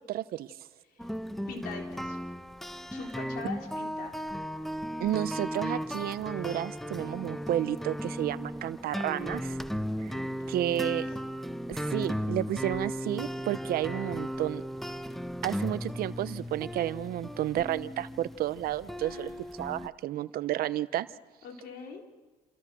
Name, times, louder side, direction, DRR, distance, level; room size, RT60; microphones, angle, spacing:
voice 1, 0.1-0.5 5.0-9.6 10.0-10.1 10.5-11.1 11.7-14.6 15.4-19.3 19.6-21.1, right 13 dB, 70° right, 15 dB, 0.9 m, -31 dB
sound 1, 1.0-19.9, equal, ahead, 1.0 m, -36 dB
voice 2, 1.5-2.2 2.9-4.2 10.1-10.6 19.0-19.4 21.4-22.0, left 5 dB, 75° left, 2 dB, 4.0 m, -43 dB
28.5 x 28.0 x 6.2 m, 1.2 s
supercardioid pair, 70°, 16 cm